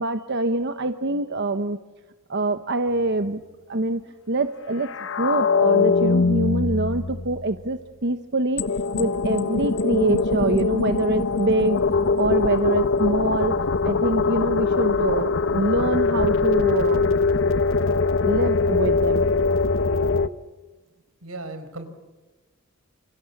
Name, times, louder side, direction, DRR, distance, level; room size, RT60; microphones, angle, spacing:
voice 1, 0.0-1.8 2.3-3.4 3.7-4.0 4.3-8.6 8.9-13.6 13.8-17.2 18.2-19.3, right 2 dB, 55° right, 9 dB, 1.1 m, -25 dB
sound 1, 4.8-7.5 8.6-20.3, left 4 dB, 65° left, 1.0 m, -22 dB
voice 2, 21.2-21.9, right 2 dB, 90° right, 9 dB, 4.6 m, -36 dB
28.5 x 28.5 x 7.3 m, 1.2 s
head